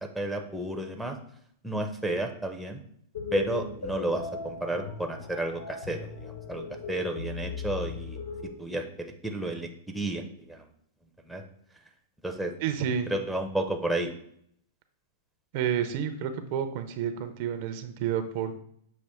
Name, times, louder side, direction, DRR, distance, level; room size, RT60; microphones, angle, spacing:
voice 1, 0.1-1.2 1.6-2.8 3.3-8.2 8.6-10.7 11.2-11.4 12.2-12.5 13.1-14.1, right 1 dB, ahead, 2 dB, 0.5 m, -32 dB
sound 1, 3.1-8.5, left 4 dB, 75° left, 0.8 m, -38 dB
voice 2, 12.6-13.1 15.5-18.5, right 8 dB, 55° right, 9 dB, 0.5 m, -30 dB
6.4 x 2.4 x 3.4 m, 0.67 s
hypercardioid pair, 135°, 0 cm